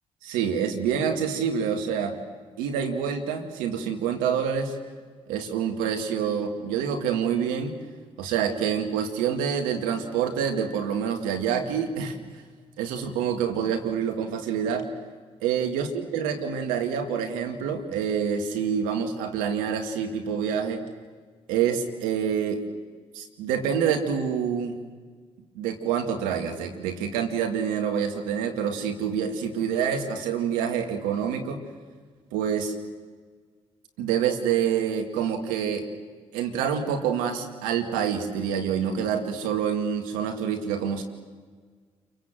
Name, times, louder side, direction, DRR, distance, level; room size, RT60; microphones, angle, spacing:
voice 1, 0.2-2.2 2.6-4.8 5.3-7.7 8.2-12.2 12.8-14.9 15.4-20.8 21.5-22.6 23.1-24.8 25.6-31.6 32.3-32.7 34.0-35.8 36.3-41.0, right 7 dB, 85° right, 4 dB, 2.3 m, -27 dB
28.0 x 24.5 x 7.7 m, 1.6 s
hypercardioid pair, 45°, 14 cm